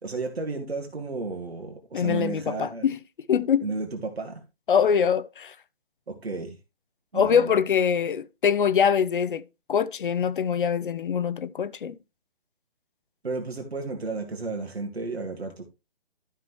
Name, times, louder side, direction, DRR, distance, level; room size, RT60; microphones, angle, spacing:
voice 1, 0.0-2.9 3.6-4.4 6.1-6.6 7.1-7.5 13.2-15.7, right 3 dB, 85° right, 2.1 m, -33 dB
voice 2, 1.9-2.9 3.3-3.6 4.7-5.5 7.1-9.4 9.7-12.0, left 7 dB, 55° left, 0.8 m, -23 dB
12.0 x 6.0 x 3.1 m
figure-of-eight pair, 145°, 30 cm